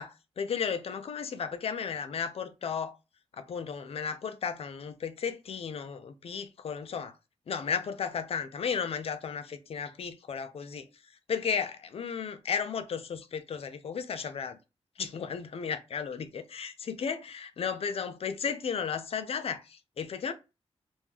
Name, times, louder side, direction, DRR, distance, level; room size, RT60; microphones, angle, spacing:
voice 1, 0.0-2.9 3.4-7.1 7.5-10.9 11.3-14.6 15.0-20.3, left 6 dB, 65° left, 0.5 m, -34 dB
3.6 x 2.6 x 2.9 m
wide cardioid pair, 125°, 11 cm